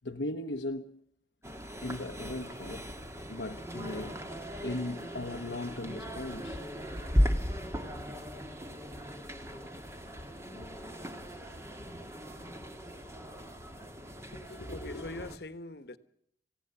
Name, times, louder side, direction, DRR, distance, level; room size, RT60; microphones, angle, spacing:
voice 1, 0.0-1.0 1.8-2.9 3.3-4.2 4.6-6.6 10.5-10.8, left 2 dB, 85° left, 1.1 m, -38 dB
sound 1, 1.4-15.4, equal, 15° right, 2.0 m, -37 dB
voice 2, 14.3-16.0, left 2 dB, 60° left, 1.4 m, -41 dB
28.5 x 16.5 x 7.0 m
head